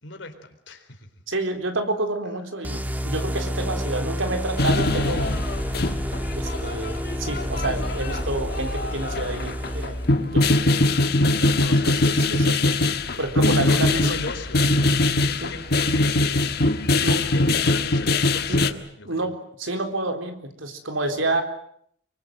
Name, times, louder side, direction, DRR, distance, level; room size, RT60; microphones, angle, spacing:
voice 1, 0.0-1.1 13.6-19.3, left 2 dB, 70° left, 7 dB, 4.2 m, -38 dB
voice 2, 1.3-5.4 6.4-10.9 11.4-12.9 13.2-14.2 15.4-15.5 17.0-17.2 18.5-18.7 19.1-21.4, right 2 dB, 90° right, 6 dB, 4.0 m, -29 dB
sound 1, 2.6-10.3, equal, 10° right, 1.6 m, -30 dB
sound 2, 4.6-18.7, left 2 dB, 55° left, 1.5 m, -22 dB
26.0 x 23.5 x 7.8 m, 0.67 s
head